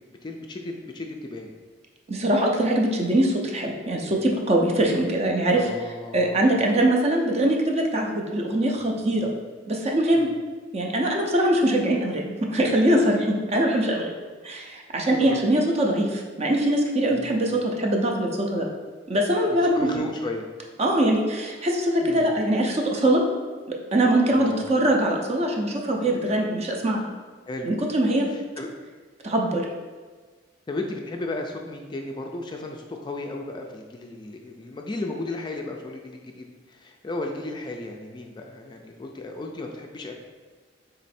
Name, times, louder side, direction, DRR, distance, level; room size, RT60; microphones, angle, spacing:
voice 1, 0.2-1.5 4.0-4.2 5.5-6.4 9.2-9.3 10.1-10.3 15.1-15.4 17.1-17.5 19.5-20.5 22.0-22.3 24.3-24.8 27.5-27.7 28.3-28.7 30.7-40.1, left 2 dB, 25° left, 2 dB, 0.3 m, -35 dB
voice 2, 2.1-5.7 6.1-9.3 9.7-10.3 10.7-14.1 14.4-18.7 19.1-19.9 20.8-23.2 23.7-27.0 27.6-28.3 29.2-29.6, right 1 dB, 35° right, 1 dB, 0.5 m, -22 dB
3.8 x 3.1 x 4.2 m, 1.4 s
head